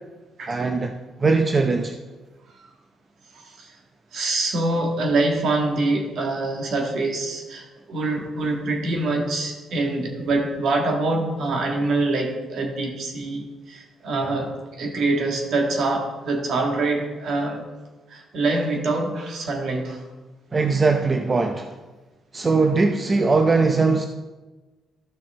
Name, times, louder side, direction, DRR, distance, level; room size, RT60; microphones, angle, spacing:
voice 1, 0.5-2.0 20.5-21.7 22.3-24.1, right 4 dB, 30° right, 4 dB, 0.6 m, -20 dB
voice 2, 3.3-3.7 4.1-17.6 18.1-20.0, right 2 dB, 70° right, 1 dB, 1.9 m, -25 dB
13.0 x 5.9 x 3.7 m, 1.2 s
cardioid pair, 90°, 0 cm